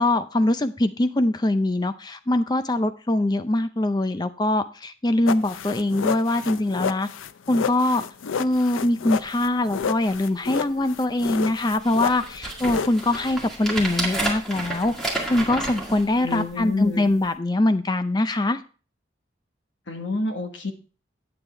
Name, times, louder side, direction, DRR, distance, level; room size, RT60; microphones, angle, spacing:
voice 1, 0.0-7.1 7.5-8.0 8.4-14.9 15.3-18.6, left 1 dB, 20° left, 11 dB, 0.5 m, -23 dB
sound 1, 5.3-13.5, left 6 dB, 85° left, 0.5 m, -30 dB
sound 2, 9.2-9.3 9.8-9.9 10.1-10.6 11.3-11.4 11.8-16.7 17.2-17.3, right 2 dB, ahead, 1.9 m, -31 dB
voice 2, 16.2-17.1 19.9-20.7, left 2 dB, 70° left, 5 dB, 1.3 m, -28 dB
8.9 x 7.9 x 3.3 m, 0.37 s
head